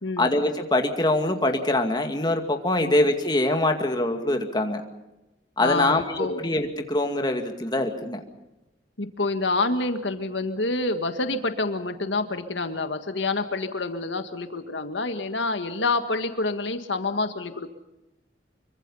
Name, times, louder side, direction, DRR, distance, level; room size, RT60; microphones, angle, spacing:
voice 1, 0.2-4.8 5.6-6.0 6.4-8.2, left 1 dB, 25° left, 4 dB, 2.2 m, -23 dB
voice 2, 5.6-6.4 9.0-17.7, left 3 dB, 80° left, 8 dB, 1.7 m, -27 dB
25.5 x 24.5 x 5.6 m, 1.0 s
head